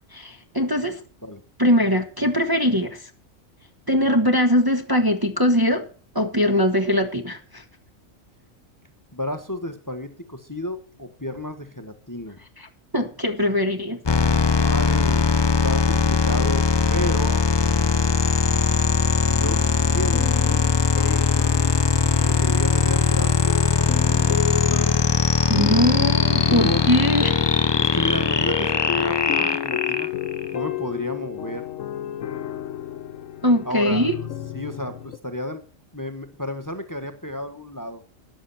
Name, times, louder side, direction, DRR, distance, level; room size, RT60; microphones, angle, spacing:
voice 1, 0.1-1.0 1.6-3.1 3.9-5.9 6.1-7.6 12.6-12.7 12.9-14.0 25.5-27.4 33.4-34.1, equal, 15° right, 4 dB, 1.4 m, -21 dB
voice 2, 9.1-12.4 14.6-15.3 15.6-16.6 16.9-17.5 19.4-20.7 20.9-21.2 22.2-25.0 26.5-26.9 27.8-30.1 30.5-31.6 33.6-34.1 34.5-35.6 35.9-38.0, left 1 dB, 15° left, 8 dB, 1.4 m, -32 dB
sound 1, 14.1-30.5, left 5 dB, 30° left, 0.5 m, -20 dB
sound 2, 19.2-35.2, left 10 dB, 75° left, 1.2 m, -32 dB
13.5 x 10.5 x 4.3 m, 0.39 s
omnidirectional pair, 1.3 m